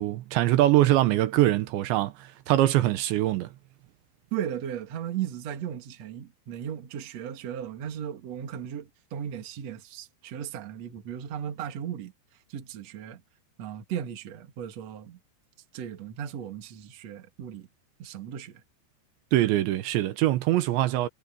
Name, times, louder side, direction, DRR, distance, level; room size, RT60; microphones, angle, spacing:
voice 1, 0.0-3.5 19.3-21.1, right 15 dB, 80° right, 3.2 m, -23 dB
voice 2, 4.3-12.1 12.5-13.2 13.6-15.2 15.7-17.7 18.0-18.6, right 9 dB, 50° right, 2.4 m, -36 dB
omnidirectional pair, 5.3 m